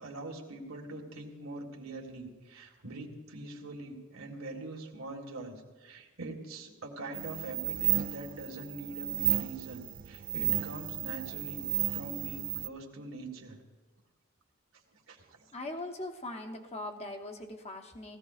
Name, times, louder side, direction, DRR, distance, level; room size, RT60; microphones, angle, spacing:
voice 1, 0.0-11.7 11.9-13.6 15.1-15.4, right 2 dB, 85° right, -1 dB, 1.8 m, -43 dB
sound 1, 7.1-12.7, right 13 dB, 45° right, 0.3 m, -33 dB
voice 2, 15.5-18.2, left 2 dB, 30° left, 4 dB, 1.0 m, -40 dB
18.5 x 14.5 x 2.4 m, 1.2 s
head